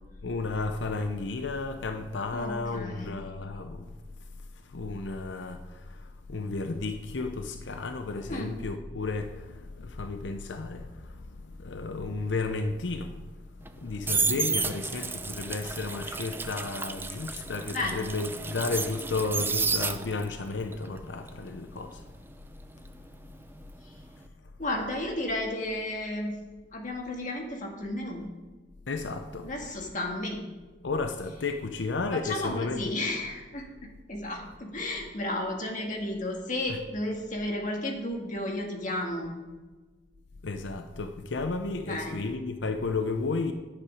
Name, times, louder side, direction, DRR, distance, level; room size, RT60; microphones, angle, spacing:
voice 1, 0.2-3.9 4.7-5.6 6.3-10.9 11.6-13.1 13.8-22.0 28.9-29.5 30.8-32.8 40.4-43.5, left 3 dB, 85° left, 0.7 m, -32 dB
voice 2, 2.3-3.2 8.3-8.5 14.3-14.4 17.7-18.1 23.8-23.9 24.6-26.4 26.7-28.2 29.4-30.4 32.1-39.3 41.9-42.2, left 1 dB, 45° left, 1.7 m, -33 dB
sound 1, 13.6-20.4 20.7-23.6 23.9-24.2, right 4 dB, 10° right, 0.5 m, -32 dB
10.0 x 9.8 x 5.0 m
head